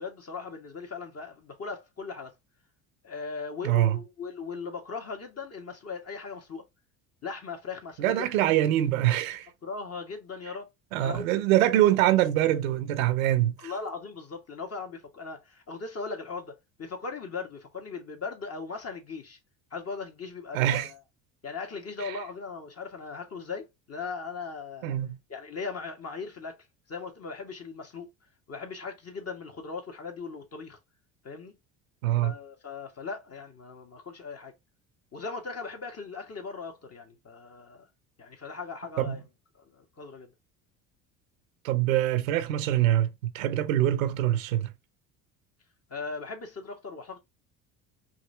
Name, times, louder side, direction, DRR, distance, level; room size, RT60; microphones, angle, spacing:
voice 1, 0.0-2.3 3.0-6.6 7.2-8.5 9.6-10.7 11.0-11.2 13.6-19.4 19.7-21.0 21.4-25.0 25.3-26.6 26.9-28.1 28.5-30.8 31.2-31.6 32.1-34.5 35.1-37.9 38.2-39.2 39.6-40.3 45.9-47.2, left 4 dB, 35° left, 1.8 m, -38 dB
voice 2, 3.6-4.0 8.0-9.5 10.9-13.7 20.5-20.9 22.0-22.2 24.8-25.2 32.0-32.3 39.0-39.2 41.6-44.7, right 13 dB, 90° right, 0.8 m, -24 dB
4.7 x 2.9 x 3.4 m
hypercardioid pair, 75°, 39 cm